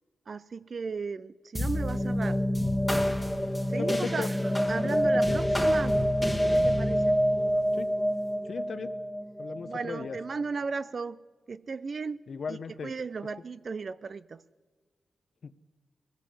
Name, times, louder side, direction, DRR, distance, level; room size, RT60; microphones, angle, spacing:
voice 1, 0.3-2.4 3.7-4.3 4.7-6.0 6.5-7.1 9.6-11.2 11.5-12.2 12.5-14.4, right 4 dB, 50° right, 0.6 m, -35 dB
sound 1, 1.5-10.3, equal, ahead, 1.5 m, -27 dB
voice 2, 3.8-4.3 4.8-5.4 7.7-7.9 8.4-8.9 9.4-10.2 12.3-12.9 15.4-15.6, left 5 dB, 60° left, 0.9 m, -37 dB
21.5 x 16.5 x 8.0 m
wide cardioid pair, 125°, 0 cm